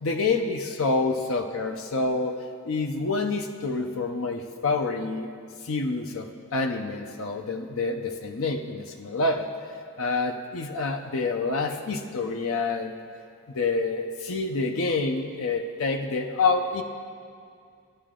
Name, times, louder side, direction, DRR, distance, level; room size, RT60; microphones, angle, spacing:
voice 1, 0.0-5.3 5.6-9.5 10.0-12.9 13.5-16.8, left 3 dB, 70° left, 5 dB, 0.6 m, -27 dB
16.5 x 10.0 x 3.7 m, 2.4 s
head